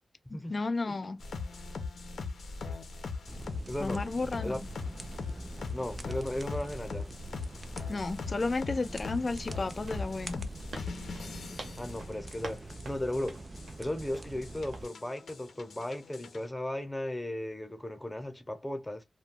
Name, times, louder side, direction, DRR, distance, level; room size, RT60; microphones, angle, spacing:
voice 1, 0.3-1.2 3.8-4.7 7.9-10.4, left 3 dB, 45° left, 0.4 m, -33 dB
sound 1, 1.2-16.5, left 4 dB, 80° left, 0.7 m, -41 dB
sound 2, 3.3-14.8, right 2 dB, 35° right, 0.4 m, -45 dB
voice 2, 3.7-4.0 4.4-4.6 5.7-7.1 11.8-13.4 13.8-19.0, left 1 dB, 15° left, 0.8 m, -36 dB
sound 3, 9.5-14.4 14.7-15.0, right 3 dB, 90° right, 0.7 m, -48 dB
2.4 x 2.2 x 3.4 m
wide cardioid pair, 80°, 0 cm